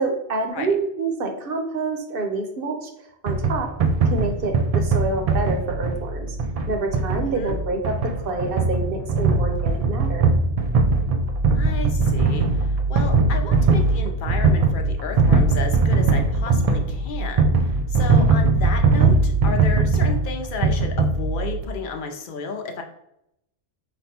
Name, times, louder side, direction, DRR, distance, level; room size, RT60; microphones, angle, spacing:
voice 1, 0.0-2.9 3.2-3.7 4.1-6.4 6.7-10.3, right 3 dB, 60° right, 3 dB, 0.9 m, -27 dB
sound 1, 3.3-21.6, right 3 dB, 75° right, 0.3 m, -20 dB
voice 2, 7.1-7.6 11.5-22.8, left 4 dB, 55° left, 4 dB, 0.7 m, -32 dB
5.1 x 2.2 x 4.2 m, 0.80 s
omnidirectional pair, 1.2 m